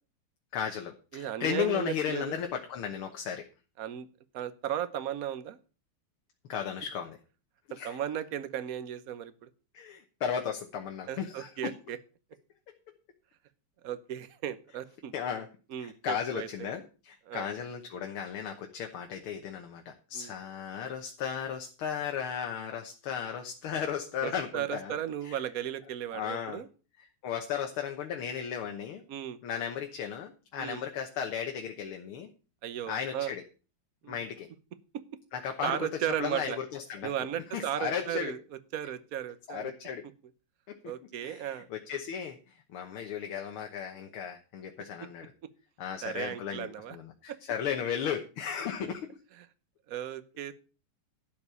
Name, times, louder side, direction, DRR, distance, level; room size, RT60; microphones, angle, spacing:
voice 1, 0.5-3.4 6.5-7.2 7.8-8.0 9.7-11.7 15.1-15.5 15.8-25.0 25.2-25.4 26.1-26.6 27.2-29.0 29.4-32.3 32.9-33.4 34.1-34.5 35.3-35.9 36.2-37.1 37.5-38.3 39.5-40.0 40.7-40.8 41.2-42.4 42.7-45.3 45.8-49.1, left 8 dB, 85° left, 4 dB, 2.0 m, -35 dB
voice 2, 1.1-2.3 3.8-4.1 4.3-5.6 7.8-9.5 11.1-12.0 13.8-15.1 15.7-16.7 17.3-17.5 20.1-20.3 24.2-26.7 29.1-29.4 30.6-30.8 32.6-33.3 34.0-34.2 34.9-35.0 35.6-36.6 37.0-39.7 40.8-41.7 46.0-47.0 47.3-47.4 49.4-49.5 49.9-50.5, right 10 dB, 55° right, 13 dB, 1.2 m, -35 dB
12.0 x 5.3 x 8.0 m, 0.36 s
omnidirectional pair, 2.3 m